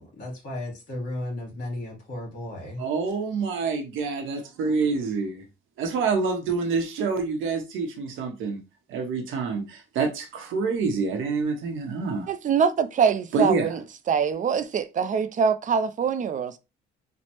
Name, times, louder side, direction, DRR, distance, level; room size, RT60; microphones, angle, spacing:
voice 1, 0.0-2.8, left 1 dB, 50° left, 1.4 m, -34 dB
voice 2, 2.8-5.5 5.8-8.6 8.9-12.3 13.3-13.8, right 4 dB, 85° right, 0.8 m, -27 dB
voice 3, 12.3-13.8 14.1-16.6, right 6 dB, 40° right, 0.4 m, -24 dB
3.1 x 2.1 x 2.9 m
cardioid pair, 90°, 20 cm